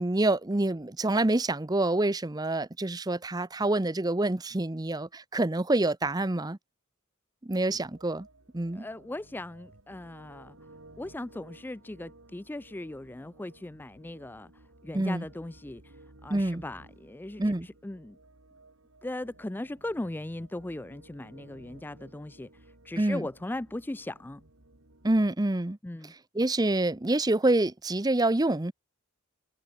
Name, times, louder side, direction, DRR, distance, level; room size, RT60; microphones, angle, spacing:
voice 1, 0.0-6.6 7.4-8.3 8.5-8.9 14.9-15.2 16.3-16.6 17.4-17.7 23.0-23.3 25.0-25.8 26.3-28.7, right 2 dB, 20° right, 0.7 m, -27 dB
sound 1, 7.8-25.3, right 2 dB, 70° right, 2.6 m, -56 dB
voice 2, 8.7-10.6 11.0-16.0 16.2-18.2 19.0-24.4 25.8-26.1, left 1 dB, 10° left, 0.3 m, -38 dB
head